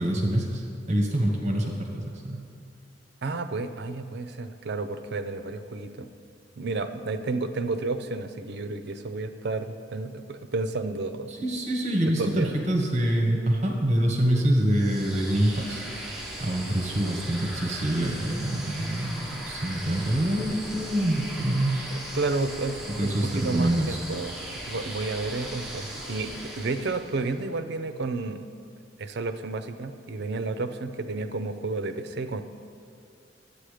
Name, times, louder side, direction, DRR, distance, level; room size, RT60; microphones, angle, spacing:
voice 1, 0.0-2.4 11.3-15.8 16.4-21.9 22.9-24.0, right 1 dB, 40° right, 0 dB, 1.3 m, -26 dB
voice 2, 3.2-6.1 6.6-11.3 12.2-12.5 21.9-24.3 24.7-28.5 29.0-32.4, right 3 dB, 60° right, 9 dB, 0.6 m, -31 dB
sound 1, 14.6-27.4, right 1 dB, ahead, 1.6 m, -38 dB
11.5 x 8.4 x 5.0 m, 2.5 s
head